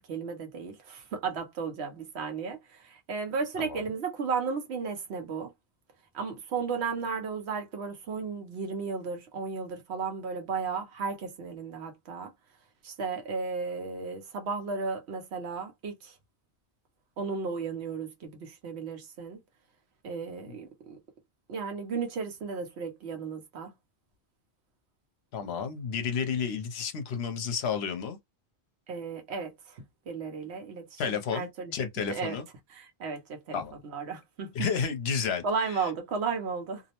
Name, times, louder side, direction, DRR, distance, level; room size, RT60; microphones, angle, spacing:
voice 1, 0.0-5.5 6.1-12.3 12.8-16.1 17.2-19.4 20.0-21.0 21.5-23.7 28.9-31.7 32.1-32.4 32.7-34.5 35.4-36.8, right 5 dB, 75° right, 1.0 m, -34 dB
voice 2, 25.3-28.2 31.0-32.4 33.5-33.7 34.5-35.4, left 6 dB, 70° left, 0.8 m, -31 dB
2.6 x 2.0 x 2.8 m
omnidirectional pair, 1.1 m